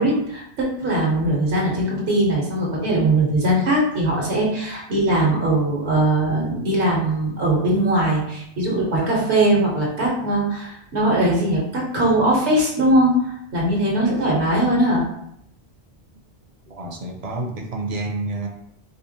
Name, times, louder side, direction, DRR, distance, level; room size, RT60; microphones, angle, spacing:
voice 1, 0.0-15.0, right 1 dB, 85° right, -3 dB, 1.2 m, -20 dB
voice 2, 16.8-18.5, right 2 dB, 50° right, 2 dB, 0.5 m, -28 dB
3.6 x 2.8 x 2.7 m, 0.73 s
omnidirectional pair, 1.1 m